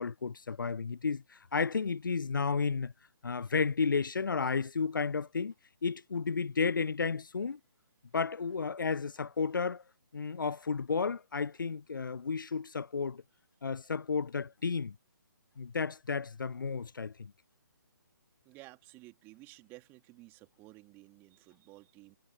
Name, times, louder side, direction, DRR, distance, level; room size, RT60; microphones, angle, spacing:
voice 1, 0.0-2.9 3.2-5.5 5.8-7.6 8.1-9.8 10.1-13.2 13.6-15.0 15.6-17.3, left 5 dB, 75° left, 0.4 m, -32 dB
voice 2, 18.4-22.2, right 21 dB, 20° right, 2.9 m, -54 dB
figure-of-eight pair, 140°, 11 cm